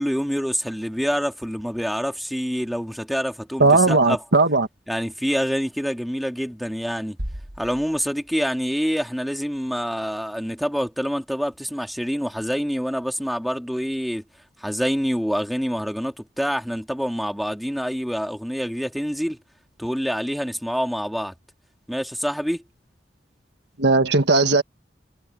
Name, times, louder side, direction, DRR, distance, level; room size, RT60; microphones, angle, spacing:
voice 1, 0.0-4.2 4.9-7.2 7.6-14.2 14.6-19.4 19.8-21.3 21.9-22.6, equal, ahead, 2.1 m, -26 dB
voice 2, 3.6-4.7 23.8-24.6, right 3 dB, 75° right, 1.7 m, -17 dB
sound 1, 7.2-9.0, equal, 55° right, 2.5 m, -37 dB
head